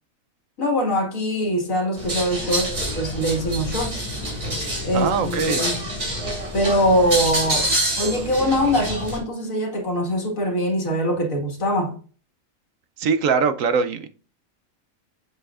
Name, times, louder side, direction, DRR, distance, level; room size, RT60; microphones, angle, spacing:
voice 1, 0.6-4.0 4.8-5.8 6.5-7.7 8.0-12.0, equal, 70° left, 2.2 m, -23 dB
sound 1, 2.0-9.2, right 1 dB, 55° right, 3.5 m, -27 dB
voice 2, 4.9-5.6 13.0-14.1, right 5 dB, 70° right, 1.1 m, -22 dB
8.1 x 7.5 x 2.5 m
omnidirectional pair, 1.5 m